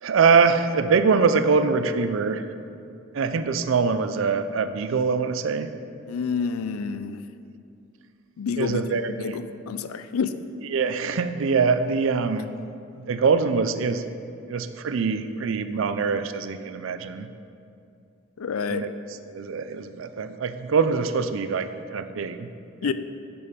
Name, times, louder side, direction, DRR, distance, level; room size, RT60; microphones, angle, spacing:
voice 1, 0.0-2.4 3.1-5.7 8.6-9.4 10.7-12.6 12.9-14.1 14.5-17.3 18.7-18.9 19.3-22.5 22.8-22.9, right 5 dB, 65° right, 11 dB, 0.4 m, -23 dB
voice 2, 6.1-7.2 8.4-8.8 9.2-10.3 18.4-18.8 22.8-22.9, left 6 dB, 80° left, 11 dB, 0.4 m, -28 dB
6.9 x 6.9 x 5.1 m, 2.5 s
head